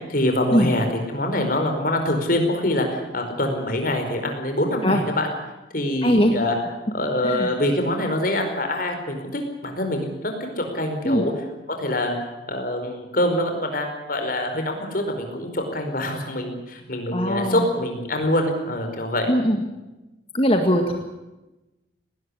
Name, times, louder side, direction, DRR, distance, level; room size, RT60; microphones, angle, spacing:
voice 1, 0.1-5.3 5.7-6.6 6.9-11.3 11.7-12.1 12.5-19.3, left 1 dB, 45° left, 4 dB, 4.9 m, -25 dB
voice 2, 6.0-6.3 7.2-7.5 11.0-11.3 17.1-17.6 19.3-19.6 20.3-20.9, equal, 30° left, 4 dB, 1.9 m, -20 dB
19.5 x 18.5 x 9.9 m, 1.0 s
head